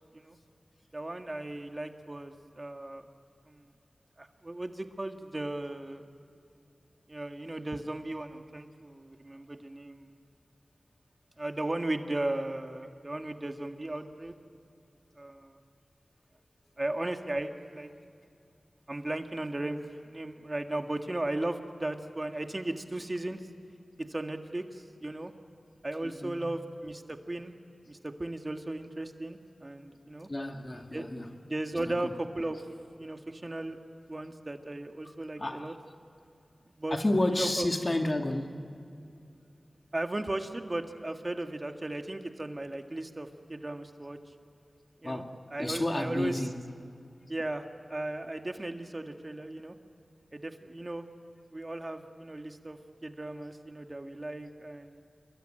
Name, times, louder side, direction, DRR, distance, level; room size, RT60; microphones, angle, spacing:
voice 1, 0.9-3.1 3.5-3.6 4.2-6.1 7.1-10.1 11.4-14.3 15.2-15.6 16.8-17.9 18.9-23.4 24.0-25.3 25.8-27.5 27.9-30.3 30.9-31.1 31.5-32.6 33.0-33.8 34.1-35.7 36.8-37.0 37.3-37.7 39.9-44.2 45.0-45.2 45.5-46.5 47.3-49.8 50.3-51.1 51.5-55.0, right 1 dB, 35° right, 1.7 m, -36 dB
voice 2, 26.0-26.4 30.3-31.3 32.0-32.1 35.4-35.7 36.9-38.7 45.0-46.6, left 1 dB, 40° left, 2.3 m, -31 dB
27.0 x 22.5 x 9.0 m
wide cardioid pair, 50°, 0 cm